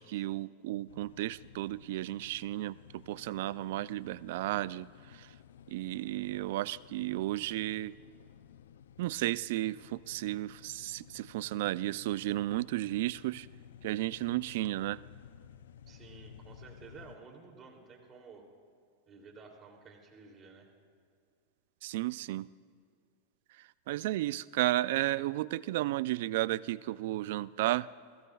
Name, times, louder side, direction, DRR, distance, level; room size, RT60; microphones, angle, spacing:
voice 1, 0.0-2.8 3.1-4.9 5.7-7.9 9.0-13.5 13.8-15.0 21.8-22.5 23.9-27.9, right 16 dB, 65° right, 19 dB, 0.3 m, -33 dB
sound 1, 0.9-17.2, left 9 dB, 85° left, 0.5 m, -55 dB
voice 2, 15.9-18.4 19.1-20.7, right 4 dB, 30° right, 2 dB, 2.8 m, -53 dB
29.0 x 15.5 x 2.3 m, 2.3 s
hypercardioid pair, 115°, 0 cm